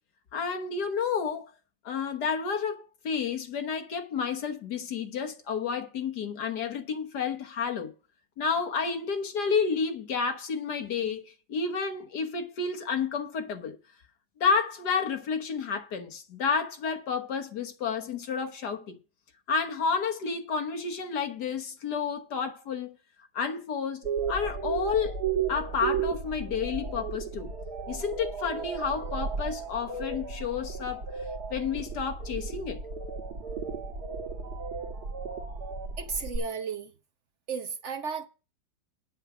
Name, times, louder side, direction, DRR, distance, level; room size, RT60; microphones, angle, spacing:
voice 1, 0.3-1.5 1.8-7.9 8.4-13.8 14.4-19.0 19.5-23.0 23.3-25.2 25.5-27.5 27.9-31.0 31.5-32.8, left 5 dB, 80° left, 1.9 m, -30 dB
sound 1, 24.0-36.4, right 5 dB, 75° right, 2.0 m, -34 dB
voice 2, 36.0-36.9 37.5-38.3, right 5 dB, 50° right, 1.1 m, -34 dB
9.7 x 7.3 x 6.1 m
omnidirectional pair, 1.7 m